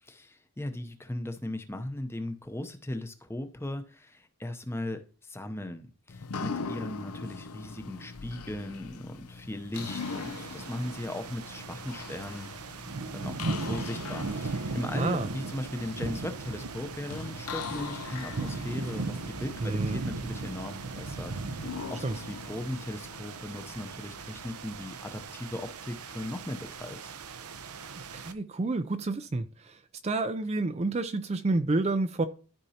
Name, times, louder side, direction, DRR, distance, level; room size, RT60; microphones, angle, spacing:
voice 1, 0.0-12.5 13.1-27.1, left 1 dB, 10° left, 0.7 m, -38 dB
sound 1, 6.1-23.9, left 5 dB, 85° left, 0.6 m, -42 dB
sound 2, 9.7-28.3, right 3 dB, 85° right, 0.8 m, -38 dB
voice 2, 15.0-15.3 19.6-20.0 22.0-22.2 27.9-32.3, right 2 dB, 30° right, 0.4 m, -29 dB
13.0 x 5.2 x 2.8 m
head